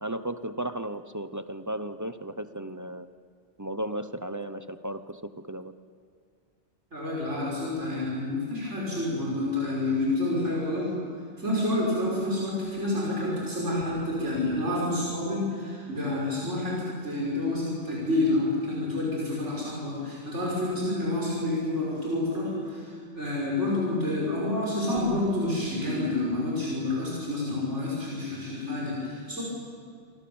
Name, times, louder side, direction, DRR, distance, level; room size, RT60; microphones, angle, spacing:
voice 1, 0.0-3.1 3.6-5.7, right 1 dB, 20° right, 11 dB, 0.8 m, -35 dB
voice 2, 6.9-10.9 11.4-29.4, left 2 dB, 85° right, -4 dB, 6.1 m, -28 dB
28.0 x 24.5 x 7.2 m, 2.2 s
omnidirectional pair, 1.2 m